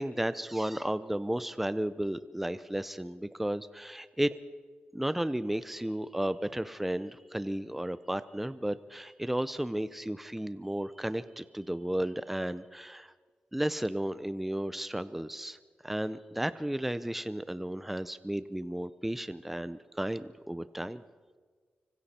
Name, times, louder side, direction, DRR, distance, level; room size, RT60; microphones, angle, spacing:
voice 1, 0.0-4.3 4.9-13.1 13.5-15.6 15.8-21.0, right 1 dB, 5° right, 14 dB, 0.6 m, -33 dB
25.0 x 24.5 x 4.3 m, 1.5 s
wide cardioid pair, 125°, 4 cm